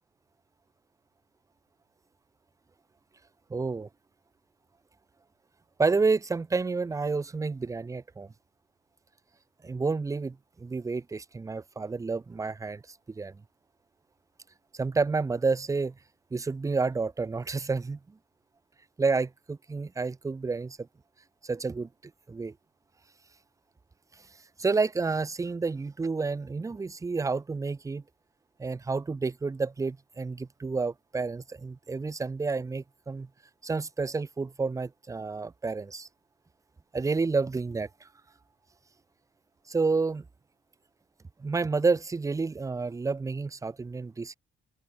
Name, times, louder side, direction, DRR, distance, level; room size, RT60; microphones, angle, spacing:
voice 1, 3.5-3.9 5.8-8.3 9.6-12.8 13.1-13.3 14.8-15.9 16.3-18.0 19.0-20.8 21.4-21.9 22.3-22.5 24.6-28.0 28.6-33.3 33.6-36.1 36.9-38.1 39.7-40.2 41.4-44.4, right 4 dB, 15° right, 0.4 m, -29 dB
cardioid pair, 90°, 20 cm